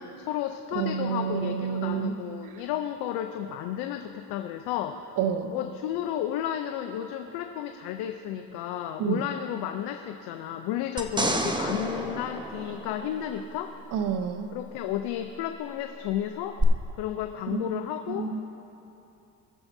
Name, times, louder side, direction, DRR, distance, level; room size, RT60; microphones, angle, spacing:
voice 1, 0.0-5.1 5.5-13.7 14.5-16.6 17.0-18.3, left 11 dB, 75° left, 6 dB, 0.6 m, -32 dB
voice 2, 0.7-2.1 5.2-5.5 9.0-9.2 13.9-14.5 17.5-17.7 18.2-18.4, right 7 dB, 55° right, 8 dB, 0.8 m, -28 dB
sound 1, 11.0-13.5 16.6-16.7, right 2 dB, 10° right, 0.8 m, -30 dB
21.0 x 7.2 x 2.7 m, 2.9 s
supercardioid pair, 90°, 40 cm